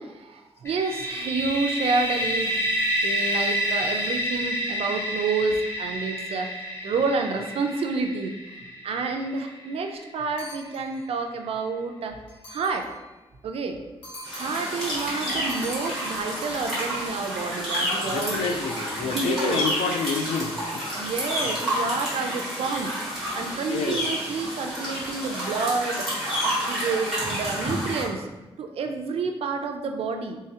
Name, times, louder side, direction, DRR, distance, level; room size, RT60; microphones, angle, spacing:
voice 1, 0.0-2.6 3.0-6.5 6.8-8.3 8.8-12.2 12.5-12.9 13.4-13.8 14.3-18.6 19.0-19.6 21.0-22.9 23.3-26.1 26.4-28.3 28.6-30.4, right 4 dB, 70° right, 4 dB, 0.4 m, -29 dB
sound 1, 0.6-10.3, equal, 25° left, 0.6 m, -29 dB
sound 2, 10.4-11.1 12.3-13.1 14.0-14.8 15.5-16.5, left 1 dB, 60° left, 1.0 m, -43 dB
sound 3, 14.2-28.0, equal, ahead, 1.5 m, -29 dB
voice 2, 18.1-21.1 21.4-21.5 23.4-24.0, left 5 dB, 85° left, 6 dB, 0.4 m, -29 dB
3.7 x 3.1 x 2.7 m, 1.1 s
wide cardioid pair, 175°, 10 cm